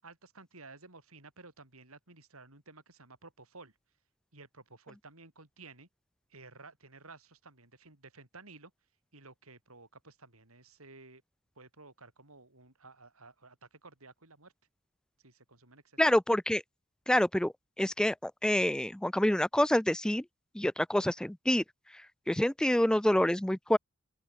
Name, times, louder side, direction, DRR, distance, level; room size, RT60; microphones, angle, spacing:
voice 1, 0.0-3.7 4.3-5.9 6.3-8.7 9.1-11.2 11.6-14.5 15.2-16.0, right 3 dB, 85° right, 7.0 m, -54 dB
voice 2, 16.0-16.6 17.1-20.2 20.5-21.6 22.3-23.8, left 1 dB, 5° left, 0.3 m, -27 dB
open air
head